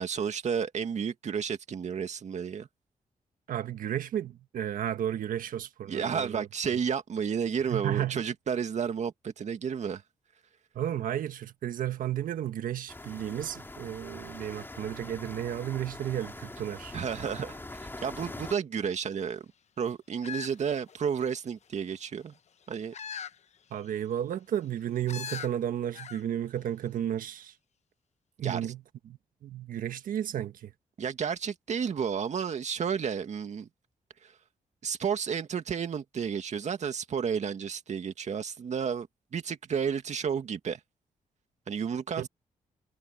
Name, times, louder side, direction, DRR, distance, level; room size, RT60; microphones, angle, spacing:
voice 1, 0.0-2.7 5.9-10.0 16.9-19.5 19.8-22.3 22.7-22.9 28.4-28.7 31.0-33.7 34.2-34.3 34.8-39.1 39.3-40.8 41.7-42.3, right 7 dB, 55° right, 2.1 m, -32 dB
voice 2, 3.5-6.5 7.7-8.2 10.7-16.9 23.7-27.5 28.4-28.8 29.1-29.2 29.4-30.7 42.2-42.3, right 10 dB, 80° right, 1.4 m, -33 dB
sound 1, 12.9-18.6, left 2 dB, 15° left, 2.7 m, -43 dB
sound 2, 20.2-21.4 22.9-23.4 23.8-23.9 25.1-25.5 25.9-26.2 26.6-26.7, left 7 dB, 55° left, 1.0 m, -40 dB
cardioid pair, 100°, 14 cm